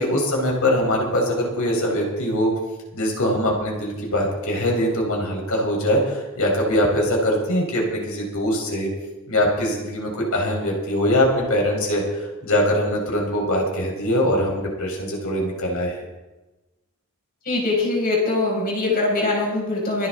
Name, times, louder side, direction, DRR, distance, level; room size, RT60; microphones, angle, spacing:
voice 1, 0.0-2.5 2.9-8.9 9.3-16.0, equal, 70° left, 0 dB, 4.8 m, -22 dB
voice 2, 17.4-20.1, left 2 dB, 40° left, -3 dB, 6.3 m, -22 dB
26.0 x 10.5 x 3.9 m, 1.1 s
head